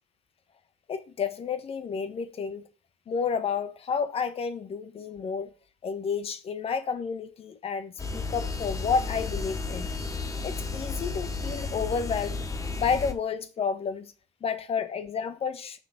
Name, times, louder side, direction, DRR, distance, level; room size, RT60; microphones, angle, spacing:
voice 1, 0.9-2.7 3.1-5.5 5.8-9.9 10.4-12.4 12.8-14.1 14.4-15.8, left 6 dB, 50° left, 1.4 m, -30 dB
sound 1, 8.0-13.1, left 3 dB, 25° left, 1.7 m, -33 dB
7.0 x 6.1 x 5.8 m
hypercardioid pair, 65°, 13 cm